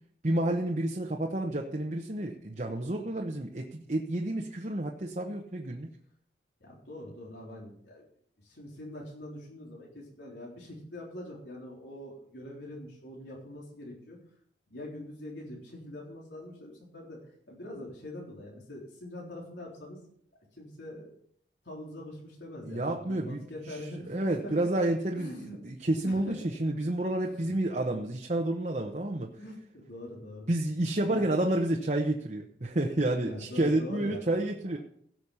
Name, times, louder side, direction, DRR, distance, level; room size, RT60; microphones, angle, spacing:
voice 1, 0.2-5.9 22.7-23.4 24.1-25.4 25.6-29.3 30.5-34.8, right 1 dB, 40° right, 1 dB, 1.0 m, -30 dB
voice 2, 6.6-8.1 8.4-14.2 14.7-20.0 20.5-21.1 21.6-24.7 25.2-25.6 26.0-26.5 27.2-27.5 29.4-30.5 31.1-31.5 33.2-34.4, left 1 dB, 80° left, -3 dB, 3.7 m, -43 dB
16.5 x 6.4 x 5.6 m, 0.65 s
head